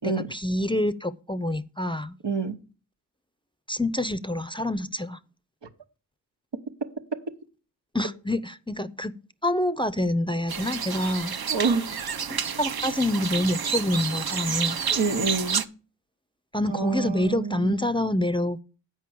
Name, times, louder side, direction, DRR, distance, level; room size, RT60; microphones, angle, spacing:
voice 1, 0.3-2.2 3.7-5.2 7.9-9.1 9.4-11.3 12.3-14.8 16.5-18.6, left 1 dB, 15° left, 0.5 m, -27 dB
voice 2, 2.2-2.6 11.5-11.9 14.9-15.7 16.7-17.8, right 4 dB, 85° right, 1.1 m, -27 dB
sound 1, 10.5-15.7, right 6 dB, 60° right, 0.7 m, -29 dB
8.4 x 5.2 x 7.6 m
wide cardioid pair, 55°, 41 cm